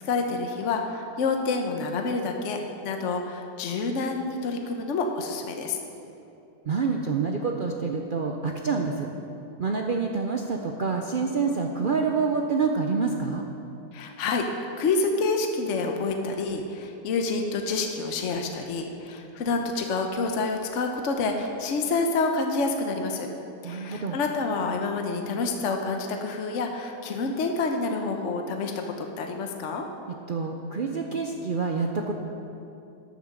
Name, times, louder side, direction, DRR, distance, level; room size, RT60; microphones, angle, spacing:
voice 1, 0.1-5.8 13.9-14.5 14.8-23.3 23.6-28.7 29.0-29.8, left 3 dB, 55° left, 4 dB, 1.0 m, -28 dB
voice 2, 6.7-9.1 9.6-13.4 23.6-24.2 30.3-32.1, right 4 dB, 80° right, 2 dB, 0.4 m, -27 dB
13.0 x 6.8 x 6.4 m, 2.8 s
omnidirectional pair, 1.8 m